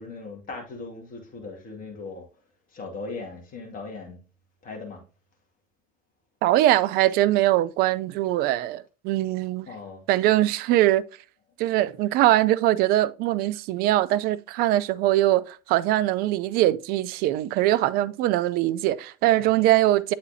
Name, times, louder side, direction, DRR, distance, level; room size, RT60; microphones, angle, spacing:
voice 1, 0.0-2.3 2.7-4.2 4.6-5.0 9.7-10.0 18.8-18.9 19.4-19.7, left 3 dB, 40° left, 2.0 m, -38 dB
voice 2, 6.4-9.7 10.1-11.0 11.6-20.1, right 15 dB, 50° right, 0.4 m, -22 dB
8.1 x 4.3 x 2.7 m
figure-of-eight pair, 65°, 21 cm